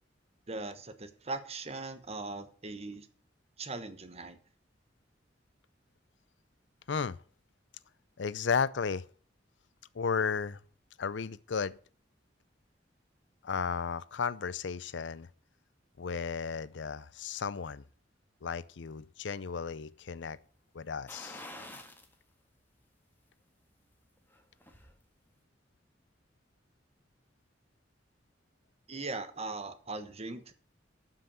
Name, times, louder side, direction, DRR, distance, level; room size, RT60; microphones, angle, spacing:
voice 1, 0.5-3.1 3.6-4.4 28.9-30.5, right 3 dB, 35° right, 1.2 m, -40 dB
voice 2, 8.2-9.0 9.9-10.6 11.0-11.8 13.4-15.3 16.0-17.8 18.4-20.4 20.7-21.4, left 6 dB, 75° left, 0.5 m, -34 dB
sound 1, 21.1-22.1 22.6-22.7 24.2-25.0 25.3-25.4, left 1 dB, 10° left, 1.6 m, -47 dB
12.0 x 5.9 x 6.9 m
head